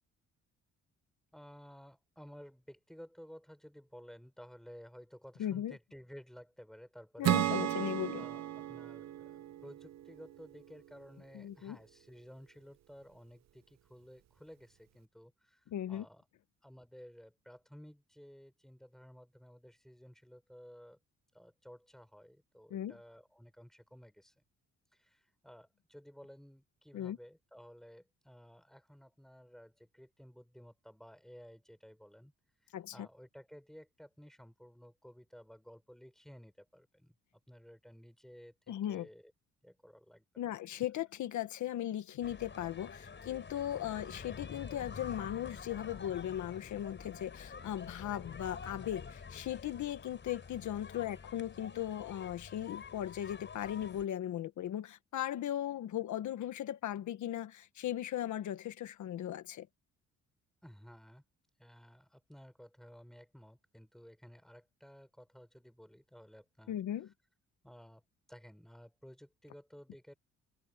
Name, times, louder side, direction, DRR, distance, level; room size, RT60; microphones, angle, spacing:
voice 1, 1.3-7.4 8.2-16.2 16.6-21.0 21.3-24.3 24.9-32.3 32.6-37.1 37.5-39.3 39.6-40.5 50.9-51.2 60.6-61.2 61.6-66.8 67.6-68.0 68.3-70.1, equal, ahead, 5.6 m, -55 dB
voice 2, 5.4-5.8 7.2-8.2 11.3-11.8 15.7-16.0 22.7-23.0 26.9-27.2 32.7-33.1 38.7-39.1 40.4-59.7 66.7-67.1, left 11 dB, 75° left, 1.5 m, -38 dB
Acoustic guitar / Strum, 7.2-10.7, right 12 dB, 60° right, 0.8 m, -34 dB
sound 1, 42.2-54.0, left 5 dB, 40° left, 5.1 m, -48 dB
cardioid pair, 90°, 30 cm